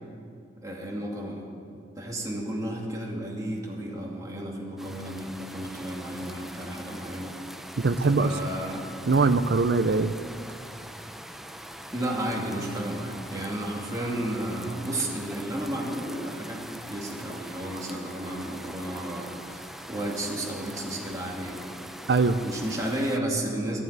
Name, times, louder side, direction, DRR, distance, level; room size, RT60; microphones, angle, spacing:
voice 1, 0.6-1.4 2.0-7.3 8.2-8.9 11.9-19.6 19.9-21.7 22.4-23.8, right 1 dB, 20° right, -2 dB, 2.4 m, -32 dB
Steady Rain, 4.8-23.2, equal, ahead, 0.6 m, -43 dB
voice 2, 7.8-8.3 9.1-10.2 22.1-22.4, right 4 dB, 65° right, 10 dB, 0.5 m, -22 dB
13.0 x 11.0 x 9.4 m, 2.4 s
head